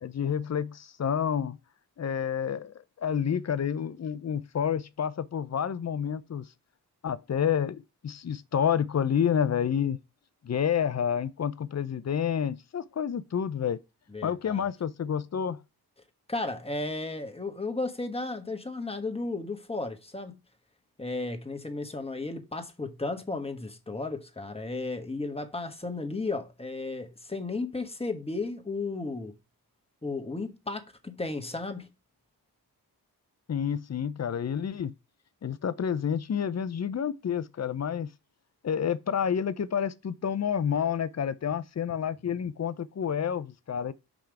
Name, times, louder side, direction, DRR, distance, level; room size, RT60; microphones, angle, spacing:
voice 1, 0.0-1.6 2.0-6.5 7.0-10.0 10.4-13.8 14.2-15.6 33.5-34.9 35.4-38.1 38.6-43.9, left 8 dB, 40° left, 0.6 m, -29 dB
voice 2, 14.1-14.7 16.3-20.4 21.0-29.3 30.0-31.9, left 3 dB, 15° left, 1.3 m, -34 dB
5.8 x 5.1 x 4.6 m
cardioid pair, 75°, 40 cm